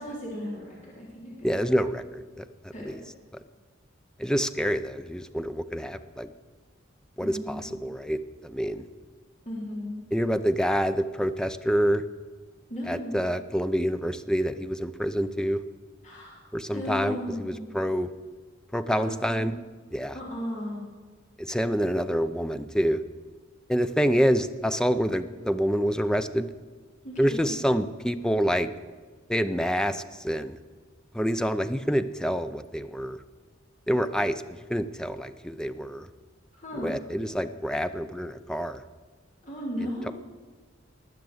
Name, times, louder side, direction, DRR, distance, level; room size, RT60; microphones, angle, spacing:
voice 1, 0.0-1.6 2.7-3.0 7.2-7.7 9.5-10.0 12.7-13.2 16.0-16.4 16.7-17.7 18.9-19.6 20.1-20.8 27.0-27.5 36.5-36.9 39.4-40.1, left 1 dB, 40° left, -4 dB, 3.9 m, -36 dB
voice 2, 1.4-2.9 4.2-6.3 7.2-8.9 10.1-12.0 12.9-15.6 16.5-18.1 18.7-19.6 19.9-20.2 21.4-23.0 23.7-26.5 27.2-28.7 29.3-30.6 31.1-33.2 33.9-36.1 36.8-38.8, equal, 5° left, 11 dB, 0.5 m, -27 dB
19.5 x 6.7 x 7.9 m, 1.4 s
head